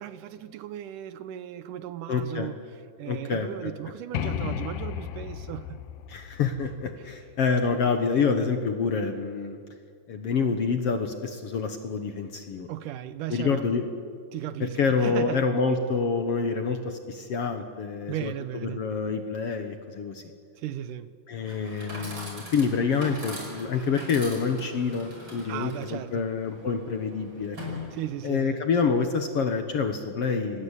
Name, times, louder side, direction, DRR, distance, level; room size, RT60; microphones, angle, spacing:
voice 1, 0.0-5.8 12.7-13.7 14.3-15.4 18.1-18.8 20.6-21.1 25.5-26.2 27.9-28.7, right 12 dB, 75° right, 2.2 m, -36 dB
voice 2, 2.1-2.5 3.1-3.7 6.1-9.6 10.1-12.7 13.3-13.9 14.6-20.2 21.3-27.8 28.2-30.6, left 5 dB, 60° left, 1.8 m, -27 dB
sound 1, 4.1-7.8, left 8 dB, 85° left, 2.7 m, -34 dB
Chatter / Coin (dropping), 21.3-28.4, left 1 dB, 30° right, 6.1 m, -42 dB
26.0 x 19.5 x 8.3 m
omnidirectional pair, 4.0 m